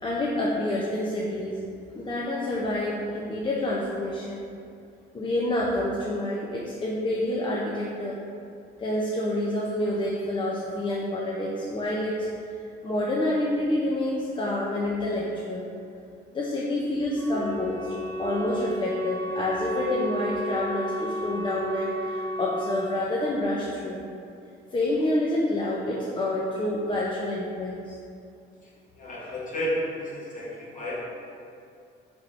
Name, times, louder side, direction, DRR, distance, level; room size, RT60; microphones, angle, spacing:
voice 1, 0.0-1.6 1.9-4.5 5.1-8.2 8.8-12.3 12.8-15.7 16.3-17.9 18.2-24.0 24.7-28.0 29.2-29.3 30.7-30.8, left 1 dB, 25° left, -5 dB, 0.4 m, -28 dB
Wind instrument woodwind instrument, 17.1-22.9, equal, 10° right, 1.0 m, -32 dB
voice 2, 28.6-31.0, equal, 40° left, -6 dB, 1.0 m, -32 dB
3.4 x 3.1 x 2.4 m, 2.4 s
cardioid pair, 90°, 20 cm